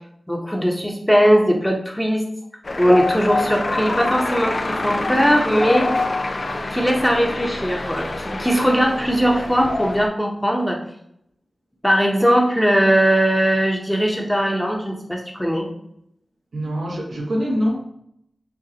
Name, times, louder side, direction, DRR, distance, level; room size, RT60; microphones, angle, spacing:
voice 1, 0.3-2.2 2.8-5.9 6.5-10.8 11.8-15.7, equal, 5° left, 1 dB, 1.1 m, -19 dB
sound 1, 2.6-10.1, left 2 dB, 55° left, 0.6 m, -26 dB
voice 2, 16.5-17.8, equal, 85° right, -4 dB, 1.5 m, -24 dB
6.6 x 2.6 x 2.8 m, 0.72 s
cardioid pair, 40°, 0 cm